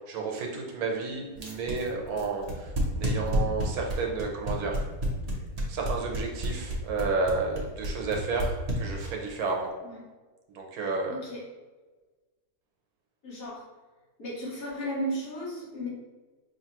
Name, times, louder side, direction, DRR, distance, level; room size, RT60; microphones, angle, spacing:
voice 1, 0.1-4.8 5.7-9.7 10.5-11.2, right 3 dB, 75° right, 1 dB, 1.2 m, -31 dB
sound 1, 1.4-9.3, right 2 dB, 40° right, 0.5 m, -30 dB
voice 2, 10.8-11.5 13.2-13.6 14.2-15.9, equal, 65° left, -6 dB, 1.8 m, -35 dB
5.1 x 2.7 x 2.9 m, 1.3 s
omnidirectional pair, 1.6 m